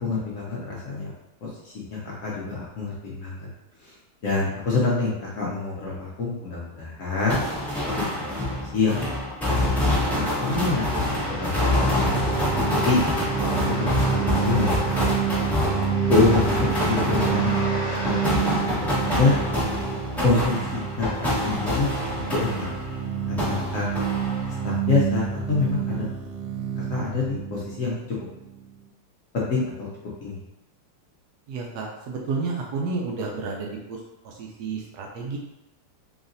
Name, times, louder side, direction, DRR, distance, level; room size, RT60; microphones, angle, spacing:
voice 1, 0.0-1.1 1.4-3.5 3.8-3.9 4.2-7.4 8.0-9.0 9.5-12.0 12.8-13.0 13.7-15.0 16.1-16.5 16.8-17.7 18.0-18.9 19.1-19.4 20.2-21.9 22.3-22.7 23.3-23.9 24.6-26.0 26.8-28.0 29.3-29.9 30.2-30.4, left 4 dB, 75° left, -5 dB, 0.7 m, -26 dB
sound 1, 7.3-23.0 23.4-24.7, left 1 dB, ahead, 0.4 m, -26 dB
sound 2, 10.7-18.3, equal, 35° right, 1.4 m, -35 dB
sound 3, 11.1-28.7, right 7 dB, 60° right, 1.3 m, -29 dB
voice 2, 31.5-35.4, right 4 dB, 85° right, -1 dB, 0.8 m, -31 dB
4.0 x 3.4 x 2.5 m, 0.94 s
omnidirectional pair, 2.3 m